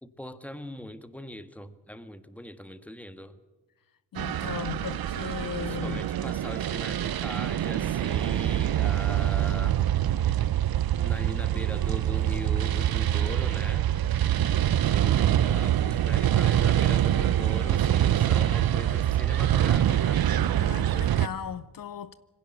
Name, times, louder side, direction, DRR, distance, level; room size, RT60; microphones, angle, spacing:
voice 1, 0.0-3.4 5.7-9.8 11.0-14.0 14.8-20.3, left 1 dB, 5° left, 1.6 m, -41 dB
voice 2, 4.1-6.0 20.5-22.1, left 9 dB, 60° left, 0.8 m, -37 dB
sound 1, 4.2-21.3, right 11 dB, 65° right, 0.8 m, -25 dB
20.5 x 16.5 x 8.0 m
cardioid pair, 60°, 38 cm